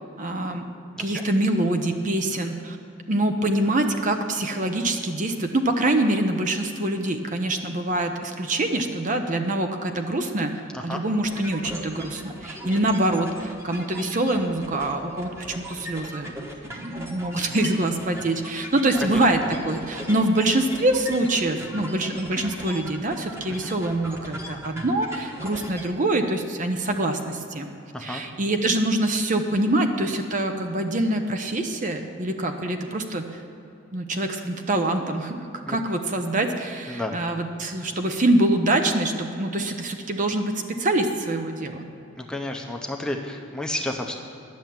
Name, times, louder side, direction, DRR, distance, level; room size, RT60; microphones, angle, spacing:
voice 1, 0.2-0.6 1.0-2.8 3.1-10.5 10.8-16.3 16.7-27.7 28.0-33.4 33.9-35.4 35.7-40.5 40.8-41.9, right 1 dB, 40° right, 6 dB, 0.7 m, -25 dB
voice 2, 1.0-1.3 10.7-11.0 19.0-19.2 23.6-23.7 27.9-28.2 35.7-35.8 36.9-37.2 42.2-44.1, left 1 dB, 5° left, 1 dB, 0.8 m, -31 dB
sound 1, 11.2-25.9, equal, 15° right, 1.2 m, -39 dB
10.5 x 7.1 x 9.2 m, 2.8 s
head